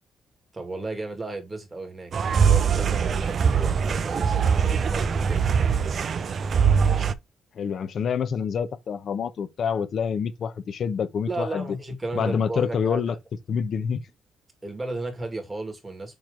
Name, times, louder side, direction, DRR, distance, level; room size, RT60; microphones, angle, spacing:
voice 1, 0.5-2.1 2.5-5.4 11.3-13.0 14.6-16.2, right 2 dB, 15° right, 2.3 m, -34 dB
sound 1, 2.1-7.1, right 6 dB, 50° right, 0.6 m, -22 dB
voice 2, 7.6-11.7 12.1-13.1 13.5-14.0, left 6 dB, 55° left, 0.9 m, -27 dB
8.8 x 3.3 x 3.9 m
cardioid pair, 120°, 0 cm